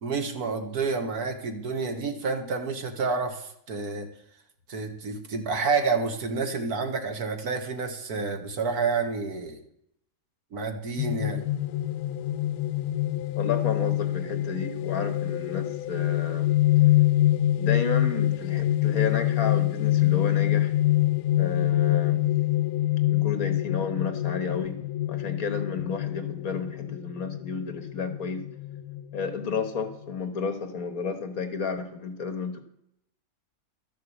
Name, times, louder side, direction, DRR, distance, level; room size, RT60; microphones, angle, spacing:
voice 1, 0.0-4.1 4.7-9.6 10.5-11.4, right 4 dB, 85° right, 6 dB, 2.0 m, -29 dB
sound 1, 11.0-30.2, left 14 dB, 90° left, 1.1 m, -25 dB
voice 2, 13.4-16.5 17.6-20.7 21.4-22.2 23.1-24.8 25.1-28.5 29.1-32.6, left 5 dB, 70° left, 8 dB, 1.8 m, -32 dB
12.5 x 6.7 x 8.0 m, 0.74 s
omnidirectional pair, 1.6 m